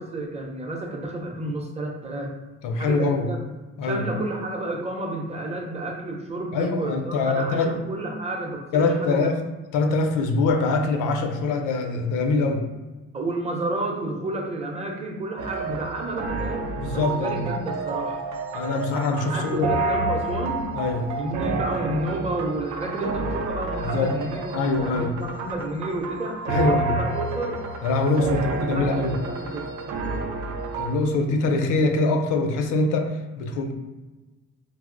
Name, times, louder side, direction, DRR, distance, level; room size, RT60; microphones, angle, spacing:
voice 1, 0.0-2.3 2.8-3.4 3.8-9.3 13.1-18.2 19.3-20.7 21.2-27.7 28.3-29.7, right 1 dB, 20° right, 1 dB, 0.6 m, -31 dB
voice 2, 2.6-3.3 3.8-4.1 6.5-7.8 8.7-9.4 9.7-12.6 16.8-17.5 18.5-19.7 20.7-21.1 23.8-24.1 24.5-25.1 26.5-27.0 27.8-29.2 30.8-33.7, left 3 dB, 90° left, 4 dB, 0.5 m, -23 dB
sound 1, 15.4-30.9, right 3 dB, 70° right, 0.5 m, -30 dB
2.7 x 2.0 x 3.7 m, 1.2 s
cardioid pair, 90°, 30 cm